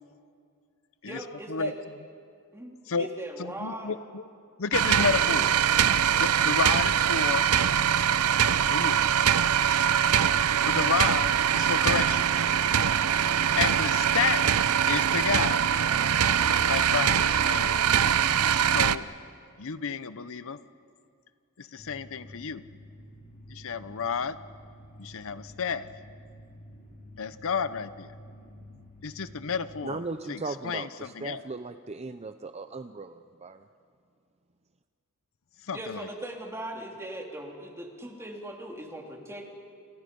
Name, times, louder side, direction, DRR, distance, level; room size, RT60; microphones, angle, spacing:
voice 1, 1.1-1.7 2.5-4.0 5.2-5.5 35.7-39.5, right 1 dB, 10° right, 0 dB, 3.1 m, -39 dB
voice 2, 3.4-4.2 4.6-5.4 6.2-7.4 8.7-9.2 10.6-12.3 13.3-14.5 14.9-15.7 16.6-17.8 18.7-19.1 19.6-20.6 21.6-22.6 23.5-24.4 25.0-25.9 27.2-28.1 29.0-30.0 30.3-31.4 35.6-36.1, left 6 dB, 65° left, 13 dB, 0.8 m, -31 dB
sound 1, 4.7-19.0, right 8 dB, 85° right, 0.7 m, -23 dB
sound 2, 21.8-29.8, left 1 dB, 40° left, 5.5 m, -50 dB
voice 3, 29.8-33.6, right 3 dB, 30° right, 9 dB, 0.6 m, -37 dB
29.5 x 29.0 x 5.4 m, 2.3 s
head